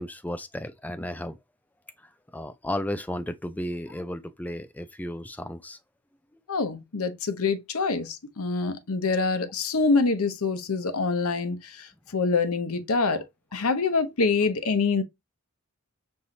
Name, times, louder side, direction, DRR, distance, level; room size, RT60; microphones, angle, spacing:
voice 1, 0.0-1.4 2.3-5.8, left 1 dB, 5° left, 0.4 m, -34 dB
voice 2, 6.5-11.9 12.1-13.2 13.5-15.0, left 4 dB, 85° left, 0.8 m, -25 dB
5.4 x 3.1 x 2.7 m
head